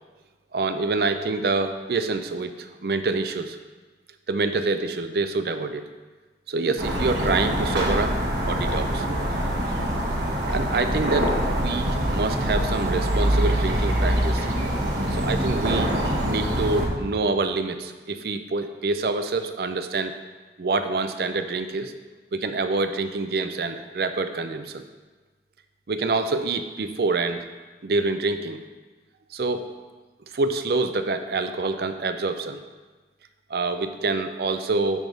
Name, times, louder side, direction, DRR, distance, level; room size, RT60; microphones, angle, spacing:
voice 1, 0.5-3.6 4.3-5.8 6.5-8.2 8.4-9.3 10.5-14.5 15.1-16.0 16.2-20.1 20.6-21.9 22.3-24.8 25.9-27.5 27.8-28.6 29.3-29.7 30.3-32.6 33.5-35.1, right 3 dB, 60° right, 9 dB, 0.5 m, -26 dB
sound 1, 6.8-16.9, equal, 80° right, 1.3 m, -24 dB
9.3 x 3.6 x 5.4 m, 1.3 s
head